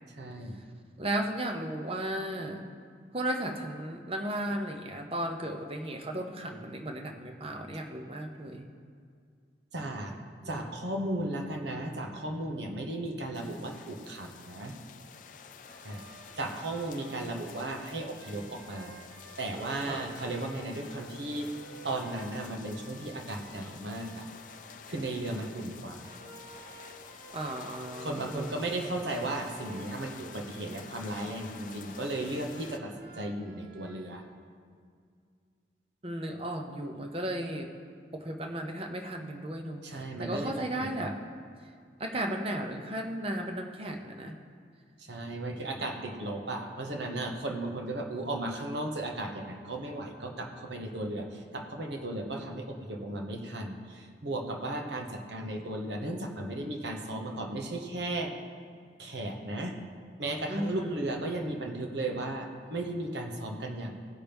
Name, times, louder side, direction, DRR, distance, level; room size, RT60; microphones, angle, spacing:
voice 1, 0.2-0.6 9.7-10.1 10.4-14.7 15.8-16.0 16.4-19.0 19.4-21.5 21.8-24.2 24.9-26.0 28.0-34.2 39.8-41.1 45.0-58.4 59.0-59.8 60.2-64.0, right 1 dB, 75° right, 2 dB, 1.1 m, -35 dB
voice 2, 1.0-2.6 3.1-8.7 10.4-10.7 19.8-20.1 27.3-28.5 36.0-37.7 38.1-41.2 42.0-44.4 45.8-45.9 60.5-61.0, right 1 dB, 30° right, 4 dB, 0.8 m, -35 dB
sound 1, 13.3-32.8, left 6 dB, 45° left, 0.4 m, -49 dB
sound 2, 15.7-34.2, right 2 dB, 55° right, 1.2 m, -54 dB
16.5 x 5.8 x 3.5 m, 2.2 s
head